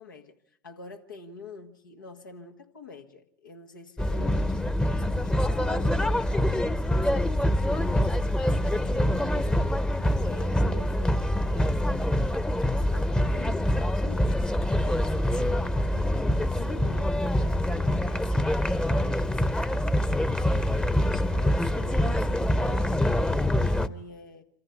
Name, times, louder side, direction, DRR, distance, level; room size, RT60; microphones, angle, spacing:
voice 1, 0.0-4.6 4.9-12.4 12.7-24.4, left 3 dB, 90° left, 1.9 m, -47 dB
sound 1, 4.0-23.9, left 1 dB, 10° left, 0.9 m, -25 dB
26.5 x 15.0 x 9.6 m
hypercardioid pair, 80°, 10 cm